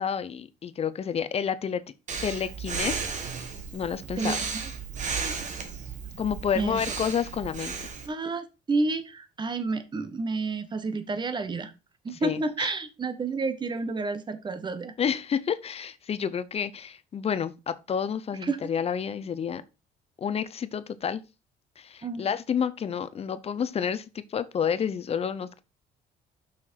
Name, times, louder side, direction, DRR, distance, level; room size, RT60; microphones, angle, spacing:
voice 1, 0.0-1.8 2.2-3.2 3.7-4.4 6.2-7.7 12.2-12.7 15.0-19.6 20.2-21.2 21.8-25.6, left 7 dB, 35° left, 0.7 m, -30 dB
Breathing, 2.1-8.1, right 5 dB, 45° right, 1.8 m, -34 dB
voice 2, 4.2-4.7 5.0-5.3 6.5-6.8 8.0-11.7 12.0-14.9 18.4-18.6 22.0-22.2, right 3 dB, 25° right, 1.2 m, -30 dB
6.1 x 6.0 x 4.5 m
cardioid pair, 110°, 17 cm